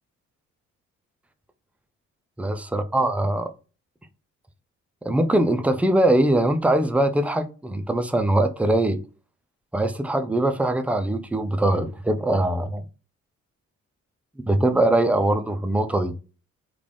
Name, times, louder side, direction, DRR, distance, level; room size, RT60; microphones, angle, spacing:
voice 1, 2.4-3.5 5.0-9.0 9.7-12.9 14.5-16.1, right 1 dB, 5° right, 0.4 m, -22 dB
3.6 x 2.4 x 3.3 m
cardioid pair, 90°, 30 cm